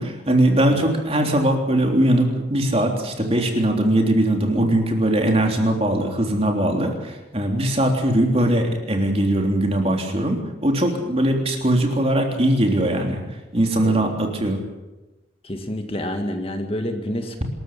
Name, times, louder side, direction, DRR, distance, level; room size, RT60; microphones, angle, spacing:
voice 1, 0.0-13.2 13.5-14.6, right 1 dB, 30° right, 2 dB, 3.4 m, -20 dB
voice 2, 15.4-17.4, left 1 dB, 30° left, 5 dB, 1.9 m, -28 dB
25.5 x 14.0 x 8.6 m, 1.1 s
head